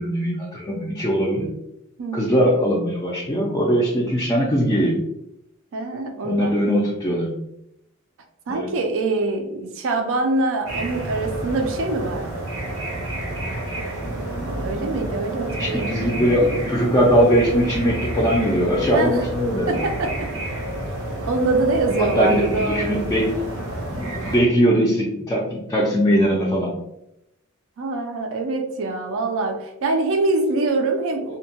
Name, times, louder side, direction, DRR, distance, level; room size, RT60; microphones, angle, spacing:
voice 1, 0.0-1.5 2.1-5.0 6.2-7.4 8.5-8.7 15.6-19.8 22.0-23.3 24.0-26.8, equal, 15° left, -4 dB, 0.4 m, -20 dB
voice 2, 2.0-2.4 5.7-6.6 8.5-12.5 14.6-16.0 18.9-19.2 19.7-20.3 21.3-23.0 24.2-24.3 27.8-31.4, right 3 dB, 65° right, 4 dB, 0.4 m, -24 dB
sound 1, 10.6-24.4, right 1 dB, 85° right, 1.0 m, -29 dB
2.7 x 2.1 x 2.7 m, 0.86 s
head